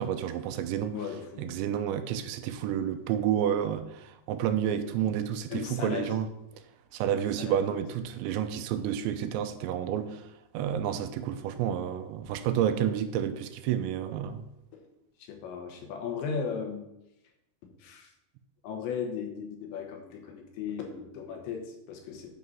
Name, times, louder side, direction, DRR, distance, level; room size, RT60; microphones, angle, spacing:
voice 1, 0.0-1.0 1.4-6.3 6.9-10.3 10.5-14.4, right 9 dB, 85° right, 2.9 m, -30 dB
voice 2, 0.9-1.5 5.5-6.2 7.4-7.8 14.7-14.8 15.2-16.9 17.6-18.1 18.6-22.3, left 6 dB, 80° left, 3.5 m, -36 dB
9.3 x 5.5 x 6.1 m
omnidirectional pair, 5.2 m